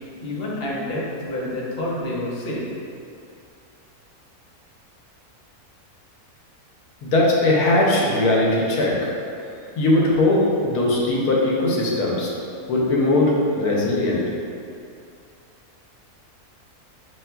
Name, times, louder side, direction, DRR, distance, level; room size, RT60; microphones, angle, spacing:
voice 1, 0.2-2.6, left 1 dB, 50° left, -5 dB, 0.9 m, -28 dB
voice 2, 7.0-9.1 9.8-12.3 12.7-14.2, left 2 dB, 90° left, -4 dB, 1.3 m, -19 dB
5.6 x 2.9 x 2.2 m, 2.5 s
omnidirectional pair, 1.6 m